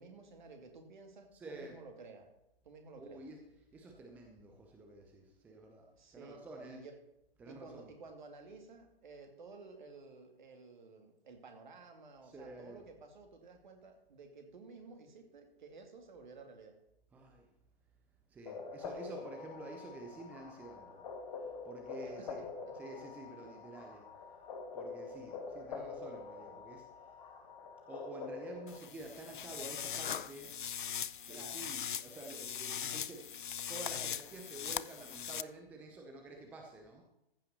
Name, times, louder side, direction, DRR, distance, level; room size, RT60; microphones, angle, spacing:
voice 1, 0.0-2.3 2.6-3.2 5.9-7.0 7.5-16.8 22.2-22.3 22.6-22.7 31.3-31.6, right 4 dB, 50° right, 5 dB, 2.3 m, -53 dB
voice 2, 1.3-1.8 3.0-3.4 3.7-6.8 7.4-7.9 12.2-12.8 17.1-17.5 18.3-21.1 21.4-22.5 22.7-24.1 24.7-27.2 27.9-30.5 31.2-33.3 33.7-37.0, right 2 dB, 5° right, 2 dB, 0.7 m, -49 dB
sound 1, 18.5-28.8, left 4 dB, 40° left, 1.7 m, -46 dB
sound 2, 28.7-35.4, left 8 dB, 55° left, 0.4 m, -40 dB
14.5 x 5.7 x 6.7 m, 0.84 s
figure-of-eight pair, 125°, 30 cm